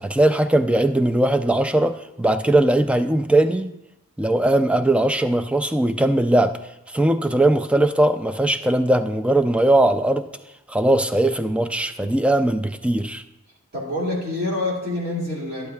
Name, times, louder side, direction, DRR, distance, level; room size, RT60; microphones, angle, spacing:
voice 1, 0.0-3.7 4.2-6.5 6.9-10.3 10.7-13.2, right 1 dB, 5° right, 10 dB, 0.3 m, -19 dB
voice 2, 13.7-15.7, left 2 dB, 50° right, -5 dB, 2.4 m, -26 dB
12.0 x 11.5 x 2.4 m, 0.87 s
head